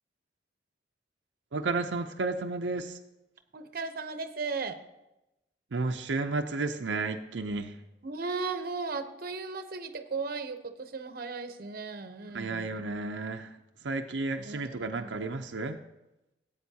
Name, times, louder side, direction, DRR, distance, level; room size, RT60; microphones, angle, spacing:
voice 1, 1.5-2.9 5.7-7.7 12.3-13.5 13.8-15.8, right 3 dB, 90° right, 4 dB, 0.6 m, -32 dB
voice 2, 3.5-4.8 8.0-12.8 14.4-15.1, right 4 dB, 55° right, 8 dB, 0.8 m, -36 dB
17.5 x 8.7 x 2.8 m, 0.94 s
head